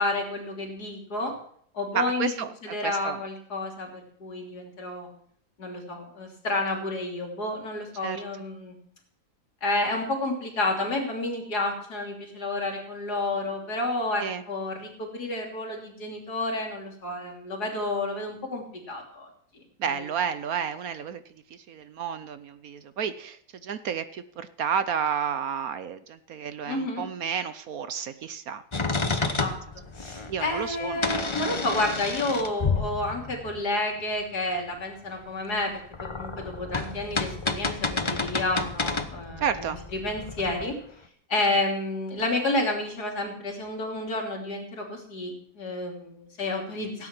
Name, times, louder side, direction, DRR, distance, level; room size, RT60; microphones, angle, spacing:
voice 1, 0.0-1.3 1.7-2.3 2.6-5.1 5.6-8.8 9.6-19.3 19.5-20.0 26.7-27.0 29.2-29.6 30.0-40.8 41.3-47.1, left 2 dB, 65° left, 2 dB, 3.5 m, -30 dB
voice 2, 1.9-3.2 8.0-8.2 14.2-14.4 19.8-21.2 21.5-29.6 30.3-31.0 39.4-39.8, right 7 dB, 65° right, 13 dB, 1.1 m, -31 dB
sound 1, 28.7-33.6 35.6-40.7, left 4 dB, 25° left, 0.7 m, -30 dB
17.0 x 9.6 x 6.0 m, 0.63 s
omnidirectional pair, 1.8 m